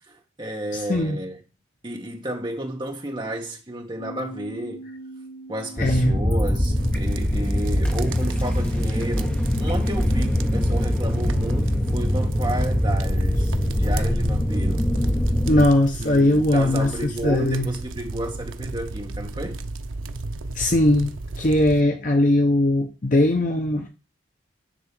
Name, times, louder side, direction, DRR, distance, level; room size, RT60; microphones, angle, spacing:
voice 1, 0.1-1.4 1.8-4.8 5.5-14.9 16.0-19.6, right 1 dB, 25° right, 1.6 m, -32 dB
voice 2, 0.7-1.2 5.8-6.2 15.5-16.9 17.2-17.7 20.5-23.9, left 1 dB, 40° left, 0.8 m, -20 dB
Bass guitar, 4.0-10.2, right 2 dB, 85° left, 3.7 m, -44 dB
sound 1, 5.8-15.7, left 1 dB, 5° left, 1.0 m, -23 dB
sound 2, 6.8-21.8, right 3 dB, 80° right, 0.7 m, -34 dB
10.5 x 3.4 x 6.2 m
head